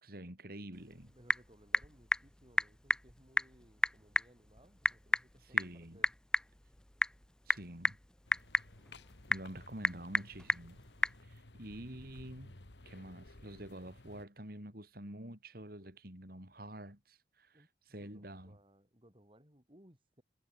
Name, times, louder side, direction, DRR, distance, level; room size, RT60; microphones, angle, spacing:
voice 1, 0.0-1.1 5.4-6.0 7.5-8.0 9.3-10.8 11.2-12.6 12.8-18.6, right 1 dB, 55° right, 4.6 m, -48 dB
Typing / Telephone, 0.7-11.2, left 1 dB, 5° left, 0.3 m, -35 dB
voice 2, 1.1-6.1 17.5-17.7 18.0-20.2, equal, 30° right, 5.1 m, -63 dB
sound 1, 8.3-14.3, left 2 dB, 80° left, 2.0 m, -56 dB
head